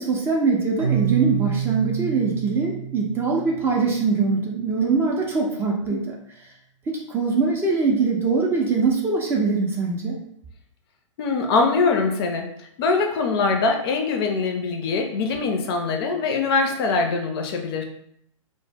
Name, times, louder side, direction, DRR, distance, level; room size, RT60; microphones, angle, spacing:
voice 1, 0.0-6.1 6.9-10.2, right 4 dB, 15° right, -1 dB, 0.3 m, -22 dB
Keyboard (musical), 0.8-4.5, right 9 dB, 90° right, 0.7 m, -28 dB
voice 2, 11.2-12.5 12.8-17.8, left 4 dB, 50° left, 3 dB, 0.5 m, -22 dB
2.0 x 2.0 x 3.3 m, 0.70 s
hypercardioid pair, 120°, 17 cm